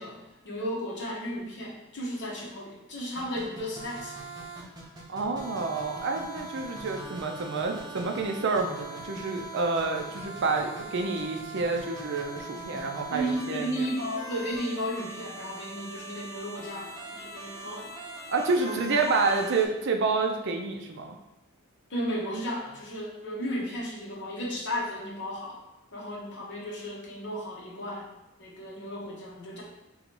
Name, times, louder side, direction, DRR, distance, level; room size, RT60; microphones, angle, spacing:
voice 1, 0.0-4.1 13.1-18.0 18.6-19.3 21.9-25.6 25.9-28.1 28.4-29.6, equal, 55° left, -3 dB, 1.1 m, -34 dB
sound 1, 3.2-19.6, right 2 dB, 20° right, 0.9 m, -42 dB
voice 2, 5.1-13.9 18.3-21.2, right 3 dB, 55° right, 3 dB, 0.5 m, -29 dB
3.9 x 3.0 x 4.5 m, 0.93 s
head